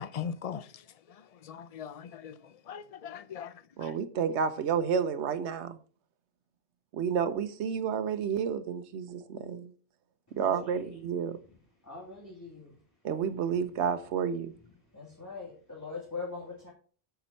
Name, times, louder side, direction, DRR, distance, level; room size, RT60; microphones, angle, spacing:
voice 1, 0.0-4.0, left 7 dB, 50° left, 0.4 m, -41 dB
voice 2, 3.8-5.8 6.9-9.7 10.4-11.4 13.0-14.5, right 7 dB, 70° right, 1.1 m, -30 dB
voice 3, 10.4-11.0 11.8-12.7 14.9-16.7, left 4 dB, 15° left, 2.0 m, -42 dB
7.5 x 7.0 x 4.1 m
omnidirectional pair, 1.2 m